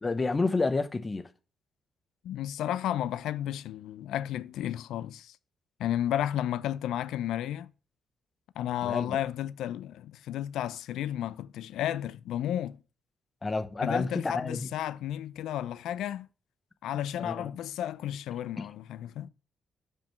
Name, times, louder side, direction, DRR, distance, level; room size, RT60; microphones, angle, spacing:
voice 1, 0.0-1.3 8.8-9.2 13.4-14.6 17.2-17.5 18.6-18.7, left 3 dB, 25° left, 0.9 m, -29 dB
voice 2, 2.2-5.4 5.8-7.7 8.6-12.8 13.8-16.3 16.8-19.3, left 11 dB, 80° left, 0.4 m, -33 dB
5.3 x 5.3 x 6.0 m
cardioid pair, 90°, 0 cm